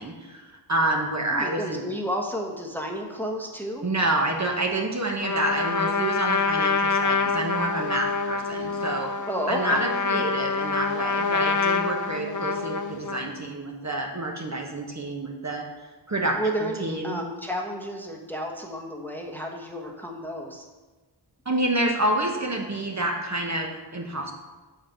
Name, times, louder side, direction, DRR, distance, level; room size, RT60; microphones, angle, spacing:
voice 1, 0.0-1.8 3.8-9.1 9.5-15.7 16.1-17.2 21.4-24.3, right 1 dB, 35° right, 1 dB, 1.1 m, -28 dB
voice 2, 1.3-3.9 6.3-6.8 8.5-8.6 9.3-9.8 12.2-12.4 16.3-20.6, equal, 5° left, 0 dB, 1.1 m, -32 dB
Trumpet, 5.2-13.3, left 4 dB, 40° left, 0.6 m, -26 dB
5.9 x 4.9 x 6.5 m, 1.2 s
wide cardioid pair, 55°, 46 cm